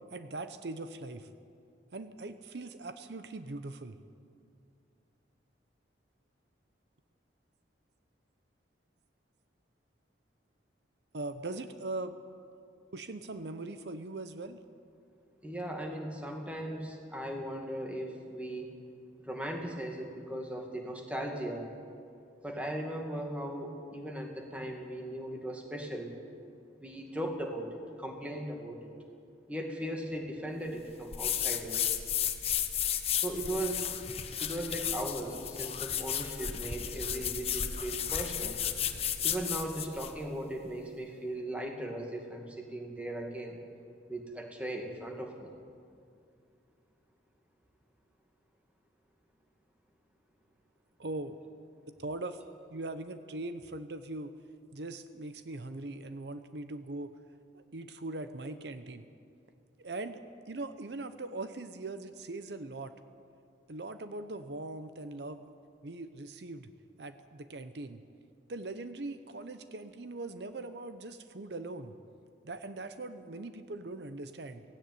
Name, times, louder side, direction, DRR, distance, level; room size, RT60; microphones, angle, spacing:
voice 1, 0.1-1.3 1.9-4.0 11.1-12.2 12.9-14.6 51.0-51.4 52.0-52.4 52.7-54.3 54.7-57.1 57.5-59.0 59.8-62.9 63.7-65.5 65.8-66.7 67.0-68.0 68.5-71.9 72.4-74.6, right 2 dB, 70° right, 10 dB, 0.8 m, -41 dB
voice 2, 15.4-18.7 19.2-21.7 22.4-26.1 26.8-28.9 29.5-31.9 33.1-33.9 34.4-38.6 39.2-43.6 44.1-45.5, right 1 dB, 5° right, 2 dB, 2.2 m, -38 dB
sound 1, 31.1-40.2, left 9 dB, 35° left, 1.1 m, -33 dB
17.0 x 16.5 x 9.4 m, 2.4 s
head